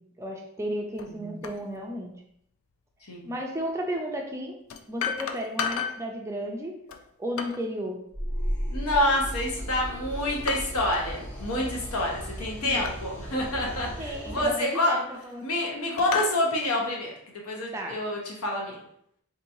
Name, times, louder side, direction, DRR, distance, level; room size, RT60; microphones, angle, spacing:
voice 1, 0.0-2.2 3.3-4.6 4.9-6.8 7.2-8.0 12.6-13.0 14.0-15.5 17.7-18.0, equal, 15° right, 1 dB, 0.3 m, -34 dB
sound 1, 1.0-1.1 1.4-1.6 3.4-3.5 4.7-6.1 6.9-7.7 9.3-9.7 10.5-11.1 11.4-11.6 12.8-13.0 13.6-13.7 14.7-15.5 16.0-16.4, left 6 dB, 65° left, 0.3 m, -33 dB
voice 2, 1.1-1.4 3.1-3.3 8.7-15.0 15.4-18.8, left 1 dB, 80° left, -1 dB, 0.9 m, -28 dB
sound 2, 8.1-14.5, equal, 10° left, 0.8 m, -35 dB
3.6 x 2.9 x 2.6 m, 0.72 s
head